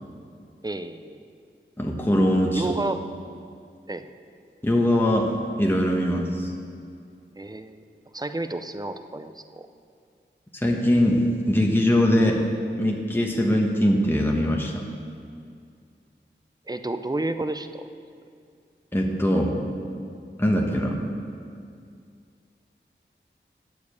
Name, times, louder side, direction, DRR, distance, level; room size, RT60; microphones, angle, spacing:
voice 1, 0.6-1.2 2.5-3.0 3.9-4.1 7.4-7.8 8.1-9.7 16.7-17.9, right 2 dB, 20° right, 9 dB, 0.6 m, -31 dB
voice 2, 1.8-2.7 4.6-5.3 5.6-6.5 10.5-12.4 12.8-14.8 18.9-19.6 20.4-20.9, left 1 dB, 10° left, -1 dB, 1.2 m, -21 dB
9.6 x 7.0 x 8.2 m, 2.3 s
wide cardioid pair, 60°, 20 cm